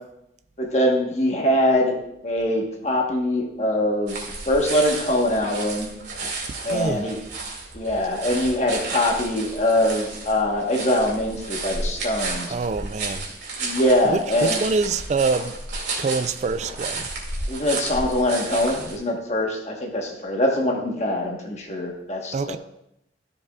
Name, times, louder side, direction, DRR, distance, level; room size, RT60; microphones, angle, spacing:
voice 1, 0.6-1.9 2.2-5.9 6.6-7.2 7.7-12.5 13.6-14.6 17.5-22.6, left 1 dB, 40° left, 1.2 m, -23 dB
sound 1, 4.1-19.0, right 3 dB, 75° right, 2.2 m, -32 dB
voice 2, 6.7-7.1 12.5-13.3 14.1-15.6 16.0-17.1 22.3-22.6, right 4 dB, 40° right, 0.3 m, -25 dB
13.0 x 6.9 x 2.4 m
head